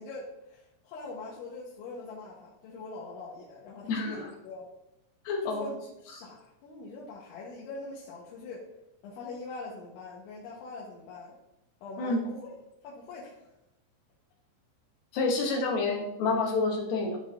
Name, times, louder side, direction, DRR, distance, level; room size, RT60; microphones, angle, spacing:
voice 1, 0.0-4.7 5.4-8.7 9.0-11.4 11.8-12.5 12.8-13.5, left 3 dB, 85° left, -5 dB, 3.5 m, -43 dB
voice 2, 3.9-4.2 5.2-5.6 12.0-12.2 15.1-17.2, left 3 dB, 65° left, 0 dB, 2.5 m, -28 dB
13.5 x 5.2 x 2.6 m, 0.90 s
omnidirectional pair, 5.4 m